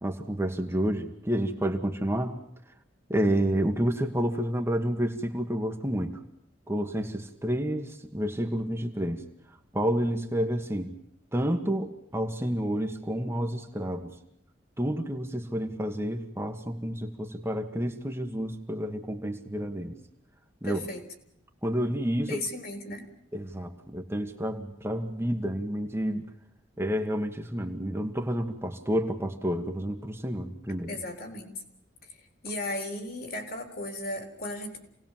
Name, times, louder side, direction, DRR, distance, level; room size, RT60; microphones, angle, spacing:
voice 1, 0.0-2.4 3.1-6.2 6.7-9.2 9.7-10.9 11.3-14.1 14.8-20.0 20.6-20.8 21.6-22.4 23.3-26.2 26.8-31.0, equal, 15° right, 3 dB, 1.7 m, -29 dB
voice 2, 20.6-21.0 22.3-23.0 30.9-31.5 32.4-34.8, left 1 dB, 55° left, 4 dB, 4.0 m, -35 dB
27.5 x 19.0 x 7.5 m, 0.75 s
head